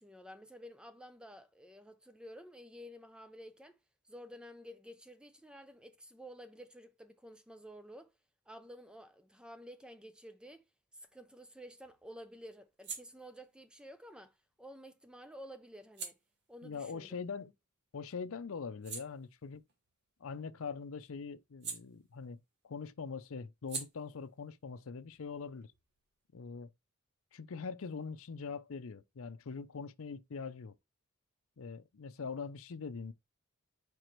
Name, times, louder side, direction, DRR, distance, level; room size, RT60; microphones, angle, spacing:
voice 1, 0.0-3.8 4.0-8.1 8.5-10.6 10.9-16.2 16.5-17.2, equal, 5° right, 0.4 m, -52 dB
sound 1, 11.1-17.9 18.3-22.6 22.8-26.2, right 5 dB, 55° right, 1.8 m, -50 dB
voice 2, 16.6-17.5 17.9-19.6 20.2-22.4 22.6-25.7 26.3-26.7 27.3-30.7 31.6-33.1, left 5 dB, 70° left, 0.6 m, -43 dB
5.0 x 4.7 x 4.5 m
head